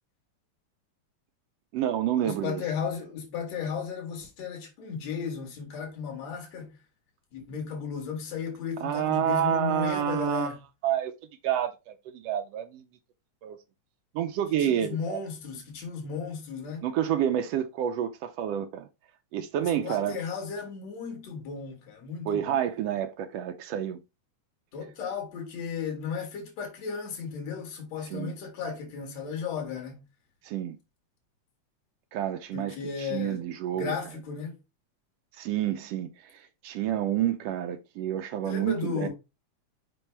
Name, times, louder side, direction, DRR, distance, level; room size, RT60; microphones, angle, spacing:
voice 1, 1.7-2.6 8.8-10.5 10.8-11.1 11.4-12.8 13.4-13.6 14.1-15.2 16.8-18.9 19.3-20.2 22.3-24.0 28.0-28.3 30.4-30.8 32.1-33.9 35.4-39.1, right 10 dB, 85° right, 1.4 m, -29 dB
voice 2, 2.2-6.7 7.3-10.5 14.6-16.9 19.6-22.6 24.7-30.0 32.5-33.4 33.7-34.5 38.4-39.1, left 6 dB, 60° left, 2.9 m, -35 dB
5.8 x 5.3 x 3.3 m
omnidirectional pair, 3.4 m